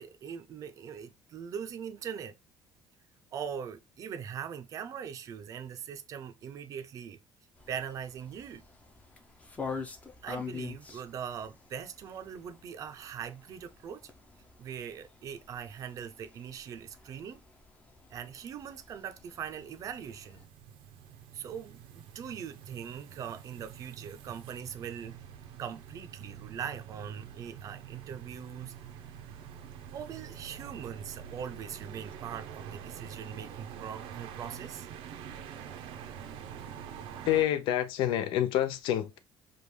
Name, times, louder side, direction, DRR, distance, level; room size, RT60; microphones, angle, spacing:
voice 1, 0.0-2.3 3.3-7.2 7.7-8.6 10.2-14.1 14.6-17.4 18.1-20.4 21.3-25.2 25.6-28.7 29.9-34.9, right 8 dB, 40° right, 0.6 m, -41 dB
sound 1, 7.6-20.4, left 5 dB, 15° left, 0.7 m, -46 dB
sound 2, 18.8-37.4, right 8 dB, 85° right, 0.8 m, -46 dB
voice 2, 37.2-39.2, left 11 dB, 70° left, 0.7 m, -27 dB
5.1 x 2.4 x 3.2 m
cardioid pair, 175°, 9 cm